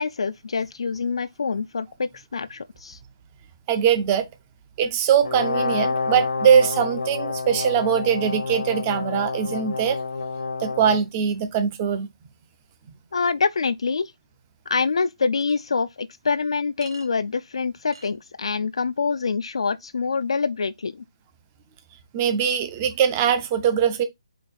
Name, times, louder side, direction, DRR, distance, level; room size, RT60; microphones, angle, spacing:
voice 1, 0.0-3.0 13.1-14.1 14.7-21.0, left 5 dB, 60° left, 0.3 m, -26 dB
voice 2, 3.7-4.3 4.8-10.0 10.6-12.1 22.1-24.0, right 8 dB, 15° right, 0.4 m, -21 dB
Brass instrument, 5.2-11.1, left 4 dB, 90° left, 1.2 m, -28 dB
Chink clink, 15.4-15.6 16.8-17.1 17.9-18.1, right 3 dB, 60° right, 1.5 m, -43 dB
4.8 x 2.5 x 4.4 m
hypercardioid pair, 180°, 3 cm